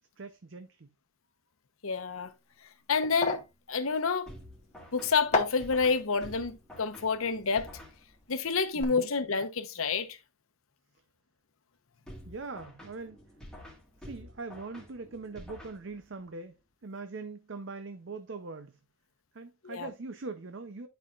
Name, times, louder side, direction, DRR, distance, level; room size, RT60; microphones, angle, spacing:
voice 1, 0.2-0.9 8.8-9.1 12.3-13.2 14.0-16.6 16.8-18.8 19.3-20.9, right 3 dB, 55° right, 0.6 m, -42 dB
voice 2, 1.8-2.3 2.9-3.4 3.7-4.3 4.9-7.7 8.3-10.2 19.6-19.9, left 5 dB, 75° left, 0.9 m, -28 dB
sound 1, 2.1-8.3 8.6-8.8, left 3 dB, 30° left, 1.0 m, -36 dB
sound 2, 4.3-8.5 12.1-16.3, equal, 5° left, 2.0 m, -50 dB
11.0 x 5.7 x 2.4 m
head